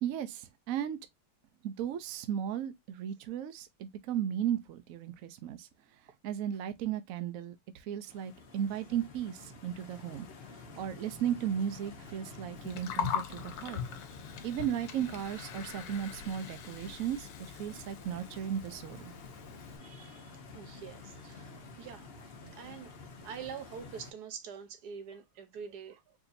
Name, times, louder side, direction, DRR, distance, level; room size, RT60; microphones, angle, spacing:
voice 1, 0.0-1.0 1.6-5.7 6.2-10.3 10.8-13.8 14.4-19.1, right 9 dB, 80° right, 0.7 m, -35 dB
Stream, 8.1-24.1, left 3 dB, 55° left, 0.7 m, -50 dB
Gurgling, 12.6-19.8, left 9 dB, 70° left, 1.4 m, -41 dB
voice 2, 19.8-22.2 22.5-23.0 23.2-26.0, right 7 dB, 60° right, 1.3 m, -45 dB
4.9 x 2.8 x 2.5 m
omnidirectional pair, 2.1 m